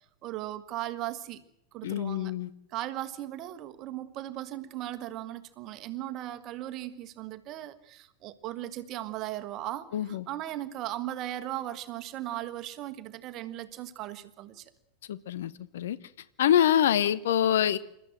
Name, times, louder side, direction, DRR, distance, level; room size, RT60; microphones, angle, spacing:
voice 1, 0.2-1.4 1.7-2.3 2.7-14.6, right 14 dB, 35° right, 1.4 m, -37 dB
voice 2, 1.8-2.5 9.9-10.3 15.1-16.0 16.4-17.8, left 10 dB, 60° left, 0.9 m, -25 dB
28.0 x 13.5 x 7.8 m
figure-of-eight pair, 90°, 0 cm